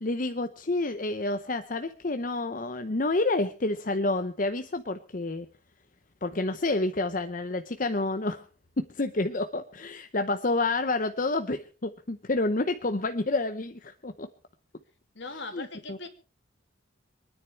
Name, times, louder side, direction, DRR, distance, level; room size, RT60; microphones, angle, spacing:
voice 1, 0.0-5.5 6.2-8.4 8.8-14.3 15.5-16.0, left 2 dB, 45° left, 9 dB, 0.8 m, -29 dB
voice 2, 15.1-16.1, left 3 dB, 65° left, 7 dB, 2.5 m, -39 dB
25.5 x 10.0 x 4.5 m, 0.37 s
head